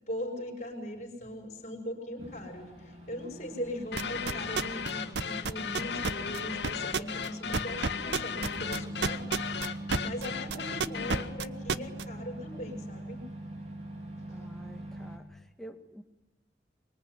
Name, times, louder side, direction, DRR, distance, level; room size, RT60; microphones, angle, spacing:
voice 1, 0.0-13.2 14.3-14.5, equal, 40° left, 1 dB, 5.4 m, -40 dB
sound 1, 2.2-15.2, right 1 dB, 40° right, 4.5 m, -43 dB
sound 2, 3.9-11.4, left 6 dB, 75° left, 1.7 m, -36 dB
sound 3, 4.0-4.9 5.2-10.3 10.5-12.0, right 4 dB, 80° right, 0.9 m, -29 dB
voice 2, 14.3-16.0, right 1 dB, ahead, 4 dB, 1.8 m, -48 dB
25.0 x 23.0 x 9.8 m, 1.0 s
head